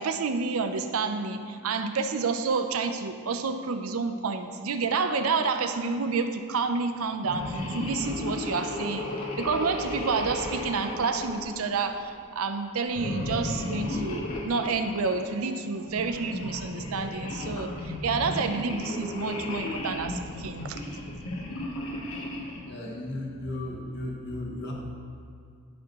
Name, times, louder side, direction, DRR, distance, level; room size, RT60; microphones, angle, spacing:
voice 1, 0.0-9.1 9.4-20.8, right 4 dB, 85° right, 8 dB, 0.6 m, -29 dB
sound 1, 7.2-12.0 12.9-15.2 15.8-22.7, left 1 dB, 80° left, 1.3 m, -34 dB
voice 2, 22.6-24.7, left 1 dB, 55° left, -1 dB, 1.0 m, -35 dB
13.5 x 5.2 x 3.0 m, 2.2 s
head